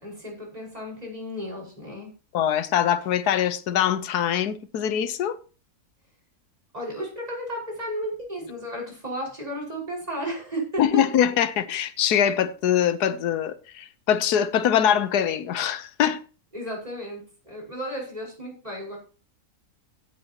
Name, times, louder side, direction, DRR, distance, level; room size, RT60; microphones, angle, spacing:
voice 1, 0.0-2.1 6.7-10.9 16.5-19.0, equal, 25° right, 5.4 m, -34 dB
voice 2, 2.3-5.4 10.8-16.2, left 9 dB, 85° left, 1.4 m, -23 dB
16.0 x 8.9 x 2.9 m
omnidirectional pair, 1.7 m